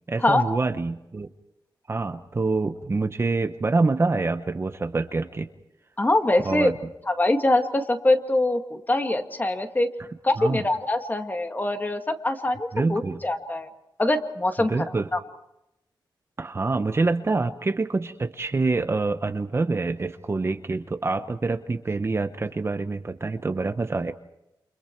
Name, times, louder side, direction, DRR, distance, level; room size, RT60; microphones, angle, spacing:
voice 1, 0.1-1.3 1.9-5.5 6.4-6.7 10.4-10.6 12.7-13.2 14.6-15.1 16.4-24.1, right 3 dB, 30° right, 8 dB, 1.0 m, -26 dB
voice 2, 6.0-6.7 7.1-9.9 10.2-13.7 14.0-14.7 15.1-15.2, left 2 dB, 20° left, 6 dB, 2.0 m, -23 dB
29.0 x 28.0 x 4.6 m, 0.88 s
wide cardioid pair, 120°, 8 cm